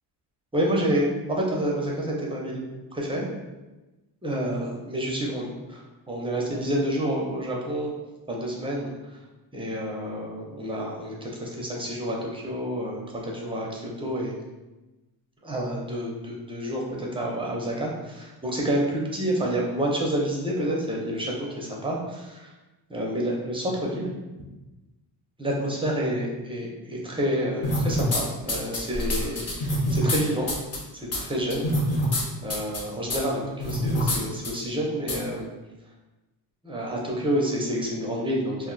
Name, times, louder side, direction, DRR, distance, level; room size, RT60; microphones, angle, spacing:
voice 1, 0.5-2.6 2.9-3.2 4.2-7.9 8.3-9.2 9.5-14.3 15.4-22.5 22.9-24.1 25.4-30.5 30.9-32.1 32.4-35.5 36.6-38.7, equal, 15° right, -2 dB, 0.4 m, -29 dB
sound 1, 27.6-28.2 28.5-30.2 30.5-30.8 31.1-31.2 31.5-32.2 32.5-32.8 33.1-33.2 33.6-34.2 34.4-34.5 35.1-35.2, left 1 dB, 35° left, 0.6 m, -25 dB
2.5 x 2.1 x 3.7 m, 1.1 s
cardioid pair, 130°, 43 cm